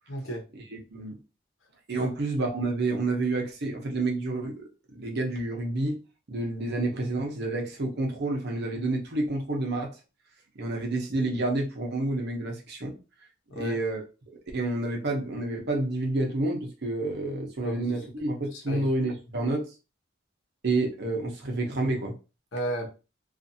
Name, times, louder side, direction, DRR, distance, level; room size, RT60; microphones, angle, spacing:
voice 1, 0.1-0.4 2.0-2.1 13.5-13.8 17.6-17.9 18.5-18.9 22.5-22.9, right 1 dB, 90° left, 0.9 m, -33 dB
voice 2, 0.7-1.2 1.9-6.0 6.3-9.9 10.6-13.0 13.5-19.6 20.6-22.1, right 2 dB, 60° right, 0.8 m, -29 dB
2.6 x 2.5 x 2.6 m
head